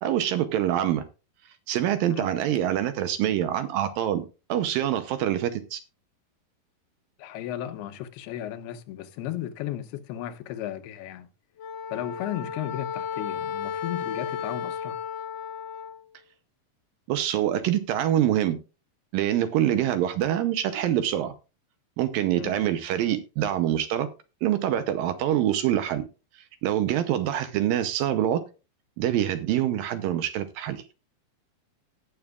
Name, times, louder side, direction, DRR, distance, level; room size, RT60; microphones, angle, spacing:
voice 1, 0.0-1.0 1.7-5.8 17.1-18.6 19.1-21.3 22.0-24.1 24.4-26.0 26.6-28.4 29.0-30.8, right 11 dB, 75° right, 2.2 m, -25 dB
voice 2, 7.2-11.3 11.9-15.0 22.3-22.6 29.5-29.6, left 12 dB, 85° left, 2.8 m, -35 dB
Wind instrument woodwind instrument, 11.6-16.0, left 6 dB, 70° left, 2.3 m, -34 dB
18.0 x 7.1 x 2.4 m
omnidirectional pair, 4.6 m